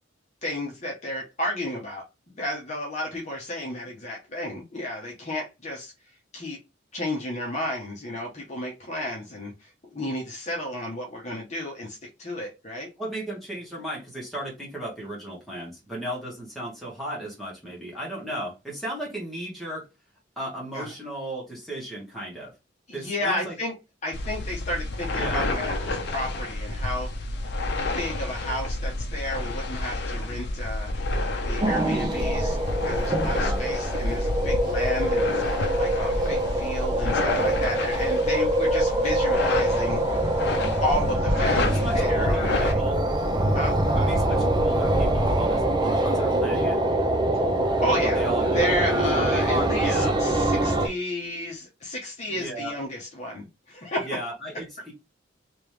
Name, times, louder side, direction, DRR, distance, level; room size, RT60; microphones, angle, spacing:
voice 1, 0.4-2.0 2.3-5.9 6.3-6.6 6.9-12.9 20.7-20.9 22.9-23.7 24.0-27.3 27.9-30.9 31.4-40.2 40.8-42.8 43.5-43.8 47.3-47.5 47.8-48.2 48.5-54.1, left 1 dB, 35° left, -1 dB, 1.0 m, -32 dB
voice 2, 13.0-19.9 20.4-22.5 22.9-23.6 25.0-25.5 33.3-33.6 41.5-43.0 44.0-46.8 48.0-48.7 49.1-50.2 52.3-52.8 54.0-54.9, right 1 dB, ahead, -5 dB, 1.8 m, -35 dB
sound 1, 24.1-42.7, left 2 dB, 55° left, 0.7 m, -29 dB
sound 2, 31.6-50.9, right 1 dB, 25° right, 0.6 m, -24 dB
3.3 x 3.0 x 3.3 m, 0.25 s
head